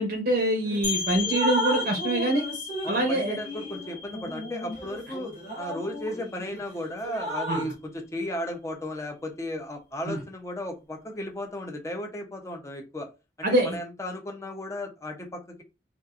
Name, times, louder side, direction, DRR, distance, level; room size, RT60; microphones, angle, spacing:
voice 1, 0.0-2.5 2.9-3.4 7.5-7.7 10.1-10.2 13.4-13.8, right 1 dB, 55° right, 2 dB, 0.6 m, -25 dB
Drip, 0.6-0.8 1.2-6.6 7.0-7.7, equal, 45° left, 1.2 m, -34 dB
sound 1, 0.8-6.3, left 5 dB, 70° left, 0.8 m, -35 dB
voice 2, 2.8-5.3 5.6-13.1 13.4-15.6, left 1 dB, 15° left, 3 dB, 0.5 m, -35 dB
2.9 x 2.4 x 2.3 m, 0.27 s
head